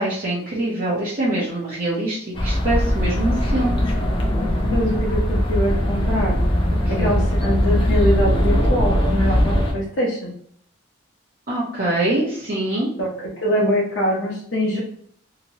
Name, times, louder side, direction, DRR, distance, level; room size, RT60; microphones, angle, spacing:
voice 1, 0.0-3.8 6.9-7.1 11.5-12.9, right 1 dB, 45° right, -7 dB, 0.7 m, -24 dB
sound 1, 2.3-9.7, equal, 25° left, 0.5 m, -20 dB
voice 2, 4.7-6.4 6.9-10.3 13.0-14.8, equal, 60° left, -6 dB, 0.9 m, -23 dB
2.9 x 2.7 x 2.9 m, 0.64 s
head